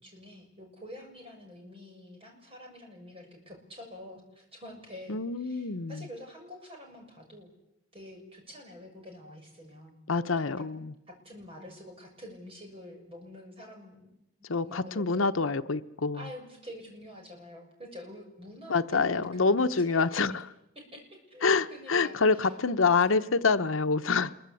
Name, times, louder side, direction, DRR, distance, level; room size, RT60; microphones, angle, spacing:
voice 1, 0.0-7.5 7.9-10.0 10.6-10.7 11.1-14.1 14.6-15.3 16.1-20.4 20.8-22.5, left 1 dB, 30° right, 7.0 m, -47 dB
voice 2, 5.1-6.1 10.1-10.9 14.5-16.3 18.7-20.4 21.4-24.3, left 4 dB, 85° left, 0.9 m, -26 dB
27.0 x 23.0 x 8.4 m
head